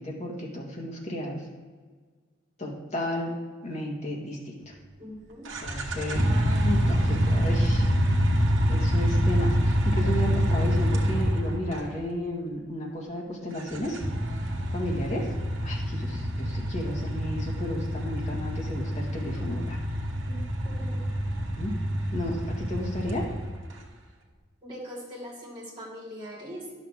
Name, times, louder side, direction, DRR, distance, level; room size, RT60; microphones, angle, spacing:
voice 1, 0.0-1.5 2.6-3.4 3.6-4.7 5.6-6.3 6.6-7.9 8.7-14.0 14.7-15.3 15.6-19.8 21.6-21.8 22.1-23.3, left 1 dB, 35° left, -2 dB, 1.7 m, -33 dB
voice 2, 5.0-5.5 20.3-21.0 21.3-21.4 24.6-26.7, equal, 25° right, -5 dB, 2.8 m, -41 dB
sound 1, 5.5-11.8 13.6-23.7, equal, 75° right, 1.2 m, -26 dB
10.5 x 6.8 x 3.6 m, 1.5 s
head